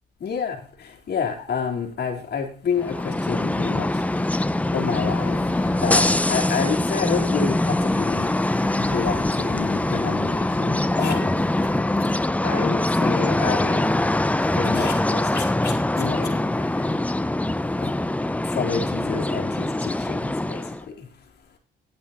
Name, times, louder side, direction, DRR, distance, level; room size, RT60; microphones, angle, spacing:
voice 1, 0.2-4.2 4.7-5.4 5.8-8.3 8.7-11.4 12.4-13.8 14.4-16.4 16.8-16.9 17.8-17.9 18.5-20.6 21.0-21.1, left 6 dB, 55° left, 4.0 m, -29 dB
sound 1, 2.7-20.8, left 1 dB, 5° left, 0.6 m, -23 dB
sound 2, 3.1-14.0, left 9 dB, 85° left, 1.7 m, -44 dB
11.5 x 8.9 x 4.4 m
cardioid pair, 90°, 20 cm